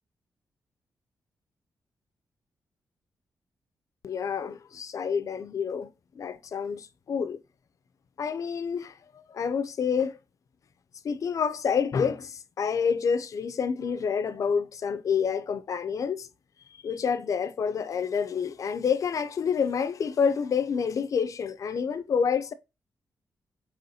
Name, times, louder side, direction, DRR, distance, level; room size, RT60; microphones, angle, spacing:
voice 1, 4.0-7.4 8.2-10.2 11.0-16.3 16.8-22.5, left 6 dB, 55° left, 0.5 m, -28 dB
5.5 x 3.0 x 2.7 m
cardioid pair, 110°, 7 cm